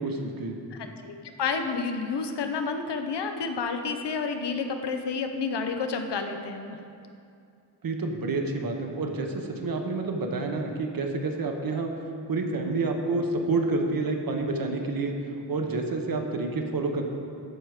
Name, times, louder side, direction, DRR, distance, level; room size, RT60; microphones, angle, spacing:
voice 1, 0.0-0.6 7.8-11.9 12.3-15.1 15.5-17.0, right 3 dB, 55° right, 3 dB, 0.9 m, -28 dB
voice 2, 0.7-6.8, left 5 dB, 75° left, 6 dB, 0.8 m, -30 dB
13.0 x 4.6 x 4.9 m, 2.5 s
wide cardioid pair, 170°, 41 cm